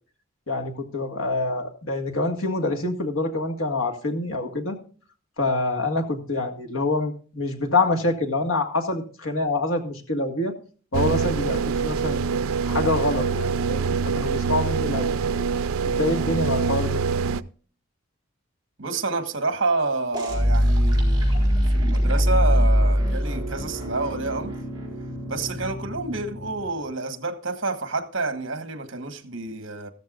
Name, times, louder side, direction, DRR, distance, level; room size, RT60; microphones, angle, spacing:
voice 1, 0.5-4.8 5.4-10.5 10.9-12.2 12.6-15.2 15.8-17.0, left 2 dB, 75° left, 1.8 m, -26 dB
sound 1, 10.9-17.4, right 5 dB, 85° right, 0.5 m, -25 dB
voice 2, 18.8-24.6 25.2-29.9, right 3 dB, 60° right, 1.3 m, -29 dB
sound 2, 20.1-26.8, equal, 20° right, 4.3 m, -22 dB
14.5 x 13.5 x 2.5 m
head